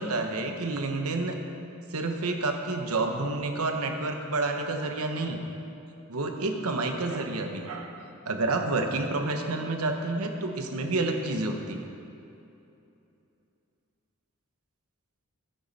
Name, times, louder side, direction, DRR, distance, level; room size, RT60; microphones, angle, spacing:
voice 1, 0.0-1.4 1.9-5.4 6.1-8.0 8.3-11.9, right 2 dB, 90° right, 4 dB, 1.1 m, -29 dB
13.0 x 9.4 x 4.2 m, 2.8 s
head